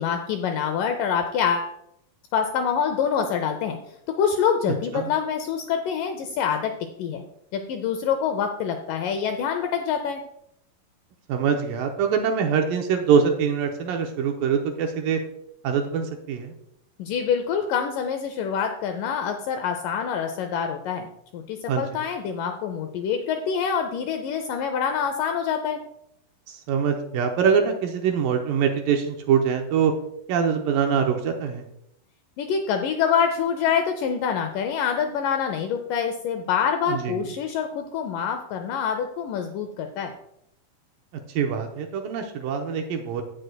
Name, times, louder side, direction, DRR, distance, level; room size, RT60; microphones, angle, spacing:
voice 1, 0.0-1.7 2.3-3.8 4.2-6.7 7.0-7.2 7.5-10.2 17.0-25.8 32.4-40.1, left 7 dB, 80° left, 6 dB, 1.9 m, -26 dB
voice 2, 4.7-5.1 11.3-15.2 15.6-16.5 21.7-21.8 26.7-29.9 30.3-31.6 36.9-37.2 41.4-43.2, right 7 dB, 75° right, 4 dB, 2.3 m, -24 dB
16.5 x 6.3 x 2.2 m, 0.76 s
omnidirectional pair, 4.4 m